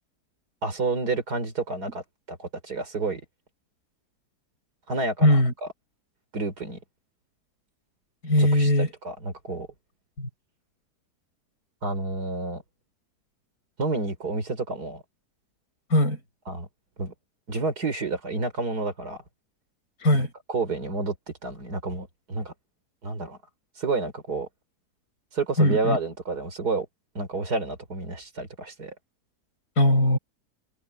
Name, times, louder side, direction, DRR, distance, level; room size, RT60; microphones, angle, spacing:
voice 1, 0.6-2.0 2.3-3.2 4.9-5.4 6.3-6.8 8.4-8.7 9.0-9.7 11.8-12.6 13.8-15.0 16.5-16.7 17.0-17.1 17.5-19.2 20.5-21.2 21.4-22.5 23.0-23.4 23.8-24.5 25.3-26.9 27.1-28.9, right 3 dB, 75° right, 4.5 m, -29 dB
voice 2, 5.2-5.5 8.2-8.9 10.2-10.3 15.9-16.2 20.0-20.3 25.6-26.0 29.8-30.2, left 1 dB, 70° left, 7.9 m, -20 dB
omnidirectional pair, 1.7 m